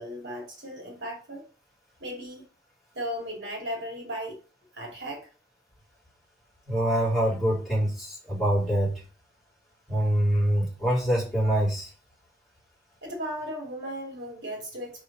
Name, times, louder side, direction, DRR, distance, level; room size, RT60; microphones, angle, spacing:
voice 1, 0.0-1.5 2.0-2.4 2.9-4.4 4.7-5.3 13.0-15.0, equal, 75° right, 2.7 m, -36 dB
voice 2, 6.7-9.0 9.9-11.9, right 1 dB, ahead, 3.8 m, -25 dB
4.9 x 4.9 x 5.3 m
head